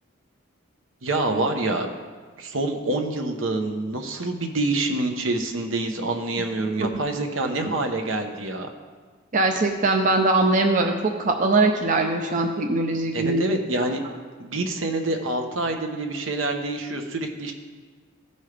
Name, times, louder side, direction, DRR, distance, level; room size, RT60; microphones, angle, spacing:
voice 1, 1.0-1.9 2.4-8.7 13.1-14.0 14.4-17.5, right 2 dB, 75° right, 4 dB, 0.9 m, -26 dB
voice 2, 9.3-13.5, right 2 dB, 40° right, 3 dB, 0.5 m, -21 dB
14.5 x 5.4 x 3.3 m, 1.5 s
head